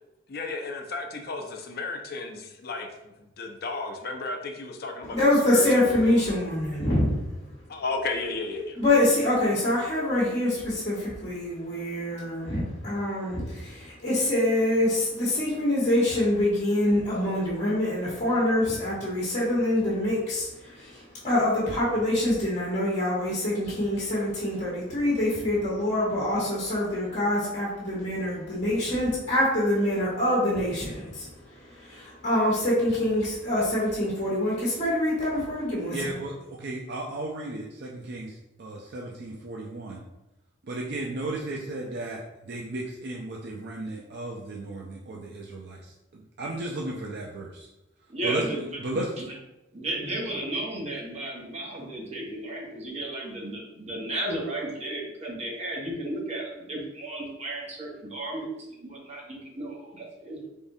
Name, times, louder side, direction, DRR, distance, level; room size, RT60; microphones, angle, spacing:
voice 1, 0.3-2.9 3.4-5.2 5.4-6.3 7.7-8.8, left 3 dB, 55° left, 4 dB, 0.6 m, -33 dB
voice 2, 5.1-7.1 8.8-31.3 31.5-36.2, left 1 dB, 35° left, -8 dB, 1.2 m, -25 dB
voice 3, 35.9-40.0 40.7-45.8 46.1-47.7 48.2-48.4 48.8-49.1, right 2 dB, 55° right, -1 dB, 0.5 m, -34 dB
voice 4, 48.1-48.7 49.2-49.3 49.7-60.5, right 1 dB, 35° right, -3 dB, 1.0 m, -34 dB
4.2 x 3.6 x 2.7 m, 0.93 s
head